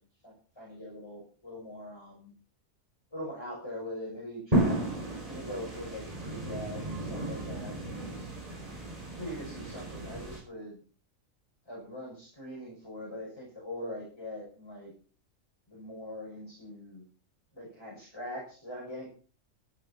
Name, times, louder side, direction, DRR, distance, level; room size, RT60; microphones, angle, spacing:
voice 1, 0.2-2.3 3.1-4.8 5.2-8.2 9.2-10.8 11.7-14.9 15.7-17.0 17.5-19.1, left 1 dB, 20° left, -5 dB, 6.3 m, -42 dB
sound 1, 4.5-10.4, right 1 dB, 25° right, 6.3 m, -33 dB
13.0 x 12.0 x 5.7 m, 0.39 s
omnidirectional pair, 1.4 m